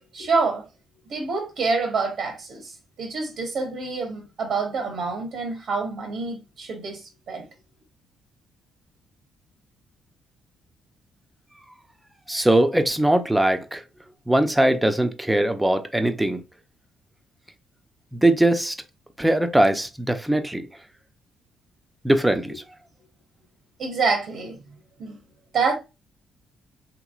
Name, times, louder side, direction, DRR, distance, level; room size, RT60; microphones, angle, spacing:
voice 1, 0.1-0.7 1.1-7.5 23.8-24.6 25.0-25.2 25.5-25.7, right 4 dB, 70° right, 0.9 m, -27 dB
voice 2, 12.3-13.8 14.3-16.4 18.1-18.7 19.2-20.7 22.0-22.5, right 1 dB, 10° right, 0.5 m, -20 dB
3.0 x 2.9 x 2.4 m
cardioid pair, 90°, 0 cm